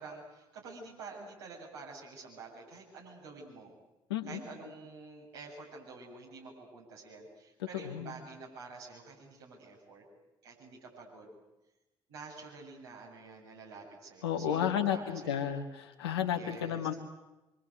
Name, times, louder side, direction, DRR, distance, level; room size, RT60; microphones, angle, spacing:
voice 1, 0.0-3.7 4.3-10.0 10.4-11.4 12.1-15.5 16.3-17.0, right 4 dB, 75° right, -3 dB, 7.6 m, -49 dB
voice 2, 4.1-4.4 7.7-8.1 14.2-16.9, left 9 dB, 75° left, 6 dB, 1.7 m, -32 dB
26.5 x 25.0 x 8.2 m, 1.0 s
figure-of-eight pair, 40°, 13 cm